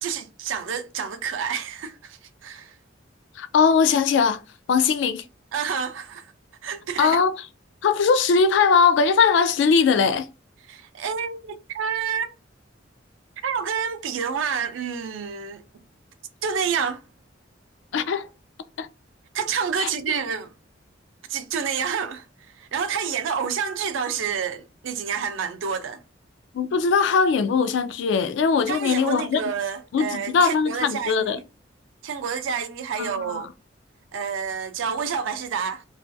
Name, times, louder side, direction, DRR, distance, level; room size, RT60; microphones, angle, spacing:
voice 1, 0.0-2.8 5.5-6.3 6.6-7.2 10.7-12.3 13.4-15.6 16.4-17.0 19.3-20.5 21.3-22.2 22.6-26.0 28.7-31.4 32.0-33.5 34.1-35.8, right 6 dB, 85° right, 0.4 m, -28 dB
voice 2, 3.4-4.4 4.7-5.2 7.0-7.4 7.8-10.3 17.9-18.3 18.8-18.9 19.8-19.9 26.5-29.4 29.9-31.4 33.0-33.5, left 5 dB, 70° left, 0.3 m, -20 dB
2.5 x 2.3 x 2.3 m
head